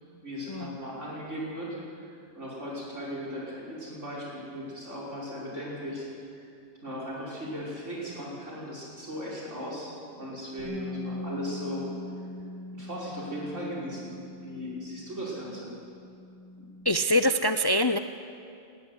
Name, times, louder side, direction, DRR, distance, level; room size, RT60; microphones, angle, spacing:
voice 1, 0.2-2.1 2.3-6.1 6.3-6.5 6.8-11.9 12.7-15.7 16.6-16.7, equal, 90° right, -5 dB, 5.9 m, -37 dB
Bass guitar, 10.6-16.8, left 2 dB, 40° right, 5.3 m, -41 dB
voice 2, 16.8-18.0, equal, 35° left, 9 dB, 0.4 m, -24 dB
19.5 x 13.5 x 9.8 m, 2.5 s
omnidirectional pair, 1.2 m